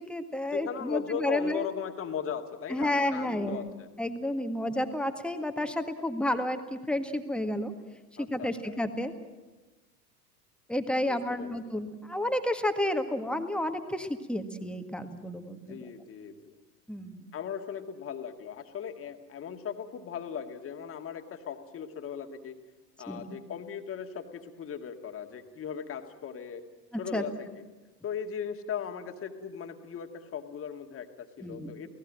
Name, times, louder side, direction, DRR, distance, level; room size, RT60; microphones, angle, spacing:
voice 1, 0.0-1.7 2.7-3.7 4.0-7.7 8.2-9.1 10.7-15.8 16.9-17.2 23.1-23.3 27.1-27.2 31.4-31.7, left 1 dB, ahead, 7 dB, 1.8 m, -31 dB
voice 2, 0.5-3.9 8.2-8.8 11.0-11.7 15.7-16.6 17.3-22.6 23.0-26.6 27.0-27.5 28.0-31.9, left 8 dB, 25° left, 5 dB, 2.1 m, -38 dB
29.0 x 18.0 x 7.6 m, 1.2 s
figure-of-eight pair, 80°, 48 cm